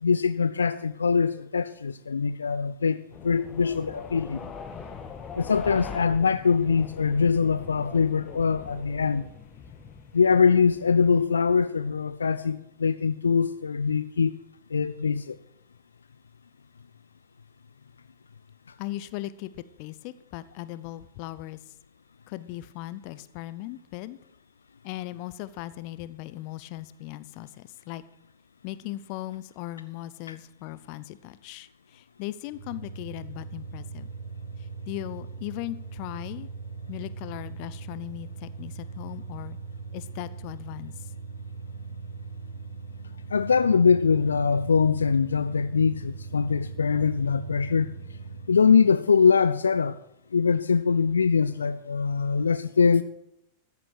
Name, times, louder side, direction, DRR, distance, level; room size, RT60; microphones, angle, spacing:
voice 1, 0.0-4.4 5.3-9.3 10.1-14.3 14.7-15.4 30.3-30.4 43.3-47.9 48.5-50.0 50.3-53.0, left 5 dB, 75° left, 0.4 m, -23 dB
sound 1, 3.1-11.3, left 6 dB, 25° left, 1.2 m, -42 dB
voice 2, 18.8-21.7 22.3-24.2 24.8-28.0 28.6-34.1 34.6-36.5 36.9-39.6 39.9-41.1, left 16 dB, 45° left, 0.7 m, -38 dB
sound 2, 32.5-48.6, right 4 dB, 50° right, 2.6 m, -40 dB
14.0 x 8.4 x 6.5 m
figure-of-eight pair, 90°, 0 cm